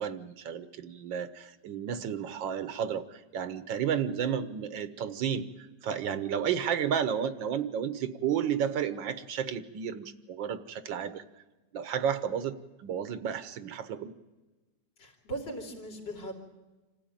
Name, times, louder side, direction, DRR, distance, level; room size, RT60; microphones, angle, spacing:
voice 1, 0.0-11.2 11.7-14.1, right 8 dB, 85° right, 12 dB, 1.7 m, -32 dB
voice 2, 15.0-16.3, right 2 dB, 70° left, 2 dB, 3.5 m, -39 dB
26.5 x 14.5 x 8.9 m, 1.2 s
omnidirectional pair, 2.0 m